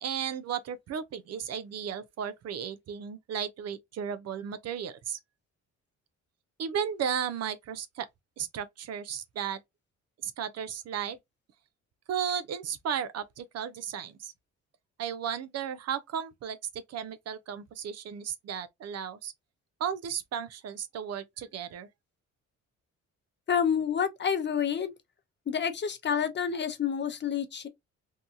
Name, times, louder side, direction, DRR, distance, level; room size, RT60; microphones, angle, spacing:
voice 1, 0.0-5.2 6.6-8.1 8.4-9.6 10.2-11.2 12.1-14.3 15.0-19.3 19.8-21.9, right 8 dB, 55° right, 0.5 m, -34 dB
voice 2, 23.5-24.9 25.5-27.7, left 7 dB, 35° left, 0.6 m, -28 dB
2.7 x 2.3 x 2.5 m
cardioid pair, 90°, 30 cm